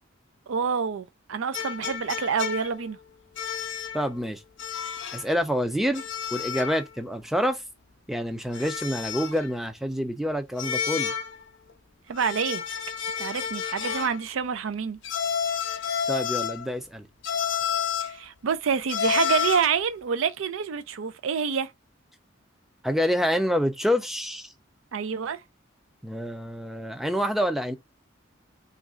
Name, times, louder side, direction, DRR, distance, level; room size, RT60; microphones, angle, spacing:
voice 1, 0.5-3.0 12.1-12.6 13.2-15.0 18.0-21.7 24.9-25.4, right 6 dB, 90° right, 0.5 m, -27 dB
sound 1, 1.5-2.9 3.4-4.1 4.6-5.3 6.0-6.9 7.2-7.3 8.5-9.5 10.6-11.4 12.2-14.2 15.0-16.7 17.2-18.2 18.9-19.8, left 8 dB, 65° left, 0.5 m, -30 dB
voice 2, 3.9-4.4 5.1-6.0 6.3-7.6 8.1-11.1 16.1-17.1 22.8-24.5 26.0-27.7, equal, ahead, 0.4 m, -27 dB
3.1 x 2.5 x 3.6 m
head